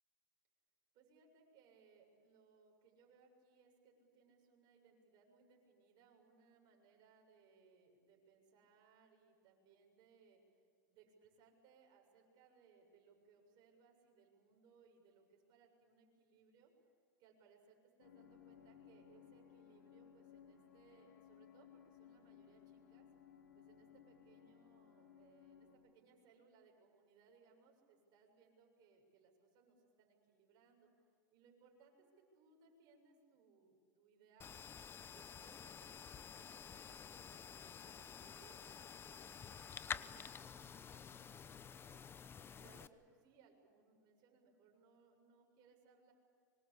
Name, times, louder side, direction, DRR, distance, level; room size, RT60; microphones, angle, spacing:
voice 1, 0.9-10.4 10.9-16.7 17.2-23.1 23.5-30.9 31.3-34.6 35.0-42.0 42.5-46.1, right 5 dB, 45° right, 2 dB, 6.9 m, -69 dB
sound 1, 18.0-25.8, left 8 dB, 80° left, 4.7 m, -62 dB
sound 2, 34.4-42.9, left 7 dB, 25° left, 0.9 m, -50 dB
25.0 x 24.0 x 8.7 m, 2.1 s
hypercardioid pair, 110°, 10 cm